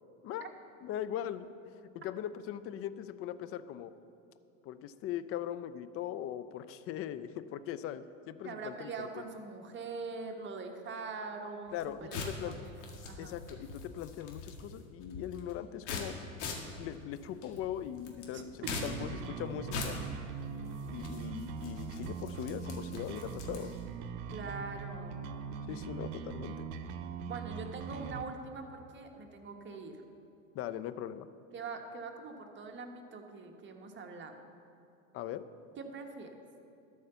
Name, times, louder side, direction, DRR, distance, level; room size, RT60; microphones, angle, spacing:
voice 1, 0.8-1.6 2.0-3.9 4.6-9.2 11.7-12.6 13.2-16.2 16.7-20.0 20.9-23.7 25.7-26.7 30.5-31.3 35.1-35.5, left 10 dB, 35° left, 13 dB, 0.5 m, -40 dB
voice 2, 8.4-13.4 18.3-18.7 24.3-25.3 27.2-30.0 31.5-34.4 35.8-36.3, right 4 dB, 30° right, 3 dB, 1.2 m, -43 dB
sound 1, 11.7-23.9, left 4 dB, 60° left, 1.9 m, -44 dB
sound 2, 18.6-28.2, right 6 dB, 60° right, 0.8 m, -41 dB
12.5 x 4.9 x 6.9 m, 2.8 s
hypercardioid pair, 90°, 41 cm